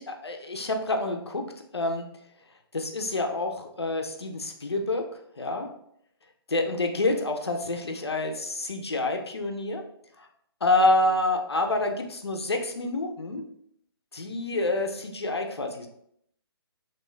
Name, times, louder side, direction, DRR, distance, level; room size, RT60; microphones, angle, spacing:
voice 1, 0.2-1.5 1.7-2.1 2.7-5.1 5.4-5.7 6.5-9.8 10.2-10.3 10.6-13.5 14.1-15.9, left 2 dB, 75° left, 4 dB, 0.5 m, -27 dB
2.9 x 2.2 x 2.3 m, 0.71 s
figure-of-eight pair, 135°, 14 cm